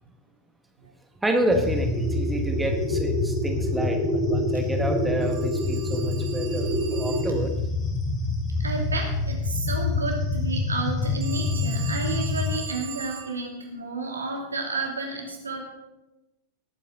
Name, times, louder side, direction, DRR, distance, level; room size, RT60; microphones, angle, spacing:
voice 1, 1.2-6.7 6.9-7.5, right 1 dB, 5° right, 4 dB, 1.4 m, -28 dB
sound 1, 1.5-12.5, left 2 dB, 30° left, 3.7 m, -26 dB
Telephone, 5.2-7.5 11.2-13.4, right 9 dB, 50° right, 2.7 m, -40 dB
voice 2, 8.6-15.6, right 3 dB, 75° right, 1 dB, 2.8 m, -31 dB
18.5 x 9.3 x 3.9 m, 0.97 s
figure-of-eight pair, 90°, 0 cm